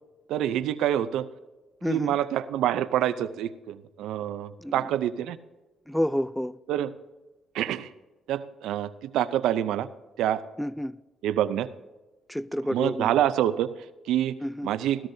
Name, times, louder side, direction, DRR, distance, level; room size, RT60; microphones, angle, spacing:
voice 1, 0.3-1.3 1.8-5.4 6.7-6.9 7.5-7.9 8.3-9.9 10.2-10.4 11.2-11.7 12.7-14.4 14.6-15.1, right 11 dB, 85° right, 0.6 m, -27 dB
voice 2, 1.8-2.1 4.6-4.9 5.9-6.6 10.6-11.0 12.3-13.1 14.4-14.7, equal, ahead, 0.4 m, -29 dB
16.5 x 13.0 x 2.8 m
cardioid pair, 90°, 0 cm